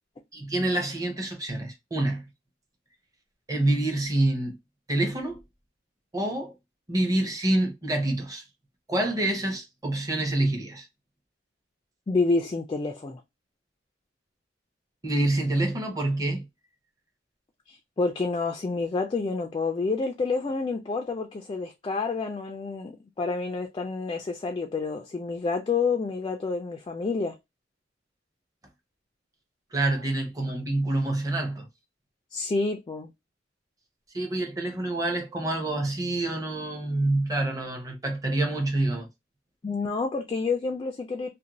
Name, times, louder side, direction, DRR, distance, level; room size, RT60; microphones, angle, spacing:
voice 1, 0.3-2.2 3.5-4.6 4.9-5.4 6.1-6.5 6.9-8.4 8.9-10.9 15.0-16.4 29.7-31.7 34.1-39.1, right 1 dB, 20° right, 0.7 m, -27 dB
voice 2, 12.1-13.2 17.7-27.4 32.3-33.1 39.6-41.3, left 4 dB, 25° left, 0.3 m, -28 dB
2.5 x 2.1 x 2.9 m
head